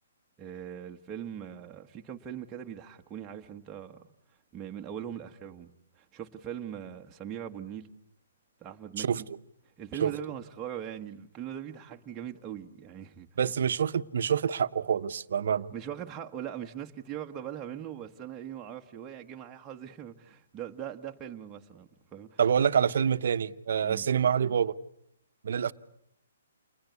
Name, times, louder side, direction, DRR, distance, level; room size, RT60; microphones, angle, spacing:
voice 1, 0.4-4.1 4.5-7.9 8.6-9.3 9.8-13.3 15.7-22.4 23.8-24.1, right 9 dB, 20° right, 1.4 m, -41 dB
voice 2, 13.4-15.7 22.4-24.7 25.4-25.7, right 7 dB, 65° right, 1.0 m, -26 dB
28.5 x 21.0 x 8.4 m
hypercardioid pair, 145°, 0 cm